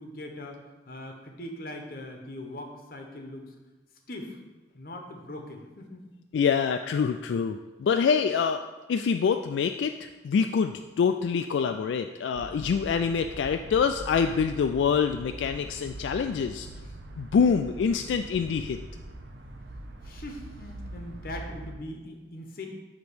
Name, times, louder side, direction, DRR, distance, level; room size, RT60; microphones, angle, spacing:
voice 1, 0.0-3.5 4.1-4.4 4.7-6.1 20.0-22.7, left 1 dB, 50° left, 3 dB, 1.0 m, -41 dB
voice 2, 6.3-8.6 8.9-16.7 17.2-18.8, left 6 dB, 80° left, 6 dB, 0.3 m, -26 dB
sound 1, 12.3-21.7, right 1 dB, 75° right, 0.7 m, -42 dB
8.4 x 3.0 x 6.2 m, 1.2 s
head